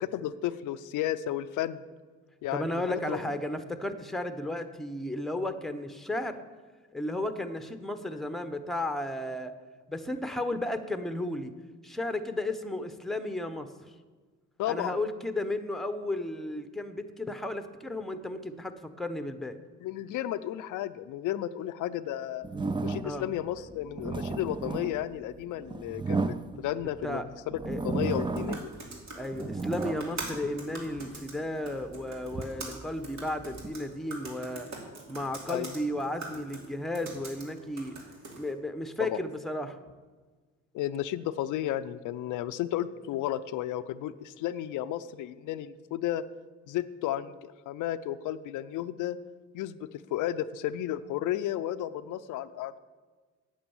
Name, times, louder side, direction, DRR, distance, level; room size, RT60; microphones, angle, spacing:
voice 1, 0.0-1.8 2.4-3.2 14.6-15.0 19.8-22.4 22.8-26.2 26.6-27.6 27.8-28.7 35.5-35.7 39.1-39.2 40.7-46.2 46.7-49.2 49.5-49.8 50.1-52.8, left 12 dB, 85° left, 12 dB, 0.5 m, -33 dB
voice 2, 2.5-6.4 6.9-9.5 9.9-11.5 11.8-13.7 14.7-19.6 23.0-23.2 27.0-27.2 27.7-27.8 29.2-34.7 35.1-38.0 38.3-39.8, left 1 dB, ahead, 9 dB, 0.9 m, -34 dB
sound 1, 22.4-23.3 23.8-27.0 27.5-28.8 29.2-31.1 31.7-33.8, right 3 dB, 15° right, 0.5 m, -34 dB
sound 2, 28.0-38.5, right 2 dB, 65° right, 2.9 m, -44 dB
8.8 x 8.7 x 7.1 m, 1.4 s
cardioid pair, 90°, 30 cm